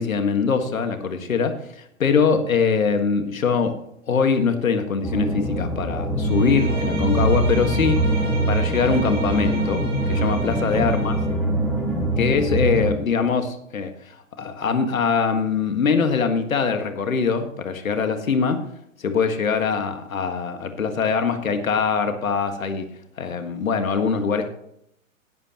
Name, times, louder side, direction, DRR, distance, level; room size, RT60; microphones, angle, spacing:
voice 1, 0.0-1.6 2.0-3.8 4.1-8.0 8.5-9.8 10.1-11.2 12.2-13.9 14.4-18.6 19.0-22.9 23.2-24.5, left 5 dB, 80° left, 7 dB, 1.8 m, -22 dB
sound 1, 5.0-12.9, right 1 dB, 5° left, 3.0 m, -23 dB
Bowed string instrument, 6.2-11.4, right 2 dB, 30° right, 5.3 m, -34 dB
18.0 x 8.8 x 3.0 m, 0.75 s
hypercardioid pair, 115°, 40 cm